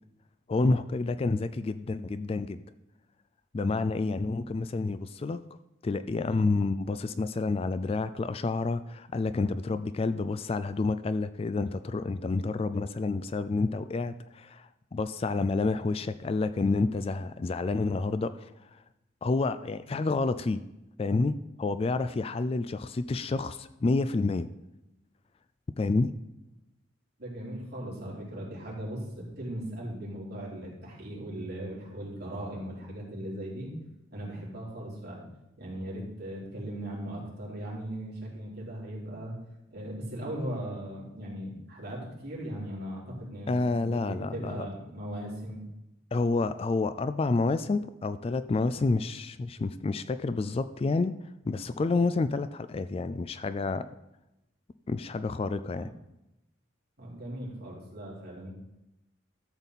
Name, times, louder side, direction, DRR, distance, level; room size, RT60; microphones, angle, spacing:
voice 1, 0.5-2.6 3.5-5.4 5.8-18.5 19.2-20.6 21.0-24.5 25.8-26.1 43.5-44.6 46.1-51.1 51.5-53.8 54.9-55.9, left 3 dB, 30° left, 13 dB, 0.3 m, -29 dB
voice 2, 27.2-33.7 34.1-35.2 35.6-39.3 39.7-45.6 55.7-55.9 57.0-58.5, right 1 dB, 55° right, -5 dB, 3.6 m, -38 dB
13.0 x 7.2 x 4.1 m, 0.92 s
head